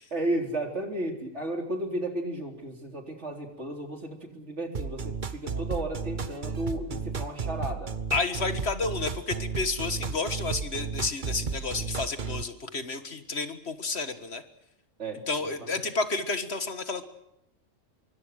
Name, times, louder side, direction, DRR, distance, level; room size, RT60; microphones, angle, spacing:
voice 1, 0.1-7.9 15.0-15.8, right 1 dB, 60° right, 4 dB, 4.1 m, -33 dB
sound 1, 4.7-12.4, right 5 dB, 40° right, 1.2 m, -33 dB
voice 2, 8.1-14.4 15.3-17.0, left 3 dB, 55° left, 10 dB, 1.8 m, -31 dB
25.5 x 23.5 x 6.5 m, 0.79 s
omnidirectional pair, 1.3 m